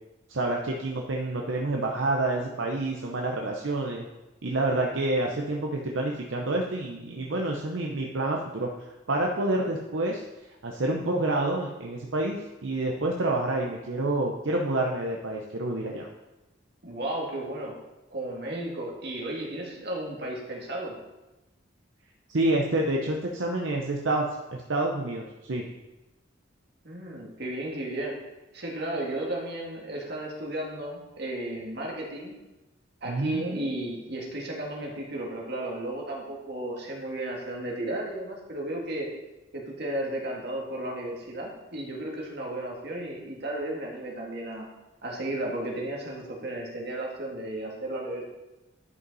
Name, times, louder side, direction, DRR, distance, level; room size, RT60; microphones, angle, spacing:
voice 1, 0.3-4.1 4.4-10.2 10.6-16.1 22.3-25.7 33.0-33.7, right 2 dB, 75° right, 0 dB, 0.7 m, -28 dB
voice 2, 16.8-17.7 18.1-20.9 26.8-28.1 28.5-32.3 33.0-39.1 39.5-44.7 45.0-48.2, right 1 dB, 55° right, -2 dB, 1.8 m, -34 dB
11.0 x 5.4 x 4.0 m, 1.1 s
head